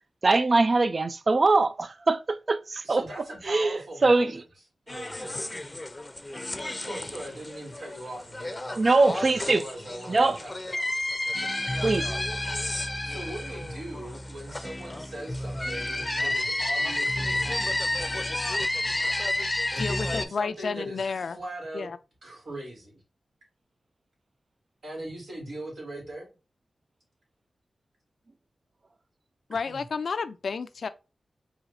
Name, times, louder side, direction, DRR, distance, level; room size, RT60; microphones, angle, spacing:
voice 1, 0.2-3.0 3.5-4.4 8.8-9.6 10.1-10.4 11.8-12.1, right 3 dB, 55° right, 0.4 m, -22 dB
voice 2, 2.8-4.4 4.9-5.5 6.8-10.9 13.0-17.7 19.7-21.9 22.2-22.9 24.8-26.3 29.5-29.8, right 1 dB, 75° right, 2.2 m, -40 dB
sound 1, 4.9-20.3, left 1 dB, 25° left, 0.5 m, -31 dB
voice 3, 19.8-21.4 21.7-22.0 29.5-30.9, left 5 dB, 80° left, 0.3 m, -31 dB
4.9 x 2.7 x 2.6 m
cardioid pair, 45°, 0 cm